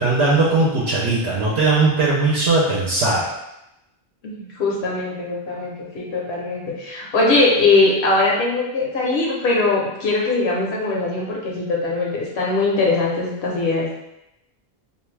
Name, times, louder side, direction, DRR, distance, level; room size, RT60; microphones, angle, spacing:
voice 1, 0.0-3.3, right 3 dB, 75° right, -5 dB, 0.9 m, -19 dB
voice 2, 4.2-13.9, left 3 dB, 75° left, -3 dB, 1.0 m, -21 dB
2.5 x 2.2 x 3.2 m, 0.88 s
omnidirectional pair, 1.1 m